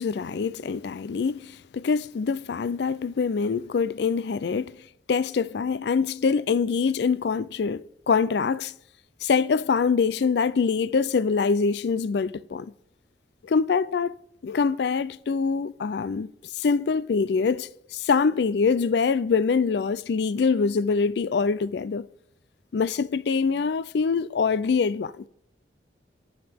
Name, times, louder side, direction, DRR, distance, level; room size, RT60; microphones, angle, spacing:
voice 1, 0.0-4.8 5.1-8.7 9.2-12.7 13.4-14.1 14.4-22.1 22.7-25.3, left 5 dB, 65° left, 0.4 m, -24 dB
21.5 x 7.8 x 3.5 m
head